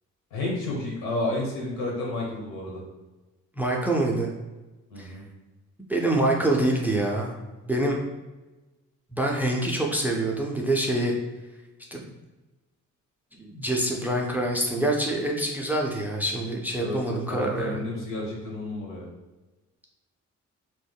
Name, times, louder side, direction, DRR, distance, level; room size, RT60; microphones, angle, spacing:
voice 1, 0.3-2.8 4.9-5.3 16.8-19.1, left 2 dB, 90° left, -3 dB, 1.1 m, -31 dB
voice 2, 3.6-4.3 5.0-5.1 5.8-7.4 7.7-8.0 9.1-11.1 11.9-12.1 13.3-17.9, right 1 dB, 5° right, 0 dB, 0.4 m, -26 dB
3.4 x 2.1 x 2.2 m, 1.1 s
cardioid pair, 90°, 30 cm